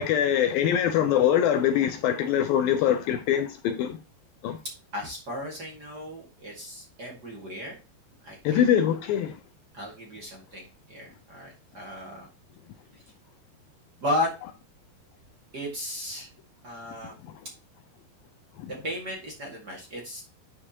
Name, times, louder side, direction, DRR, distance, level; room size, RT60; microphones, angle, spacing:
voice 1, 0.0-4.0 4.4-4.6 8.4-9.3 18.6-18.7, left 9 dB, 80° left, 2.2 m, -23 dB
voice 2, 4.9-7.8 8.2-8.6 9.7-12.3 12.9-13.0 14.0-14.3 15.5-16.3 16.6-17.1 18.7-20.2, left 1 dB, 40° right, 1.5 m, -34 dB
11.0 x 4.7 x 2.8 m
omnidirectional pair, 4.6 m